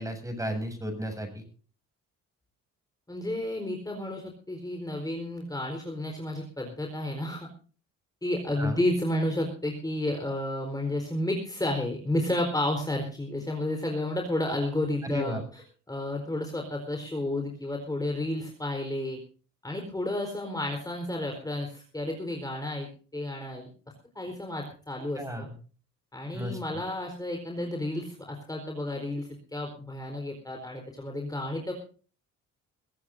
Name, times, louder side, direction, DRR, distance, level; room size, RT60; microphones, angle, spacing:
voice 1, 0.0-1.4 8.6-8.8 15.0-15.4 25.1-25.5 26.3-26.6, equal, 10° right, 6 dB, 7.9 m, -34 dB
voice 2, 3.1-7.5 8.2-15.6 15.9-19.2 19.6-23.7 24.1-25.5 26.1-31.7, left 1 dB, 10° left, 2 dB, 4.4 m, -31 dB
23.0 x 15.5 x 2.7 m, 0.39 s
cardioid pair, 90°, 30 cm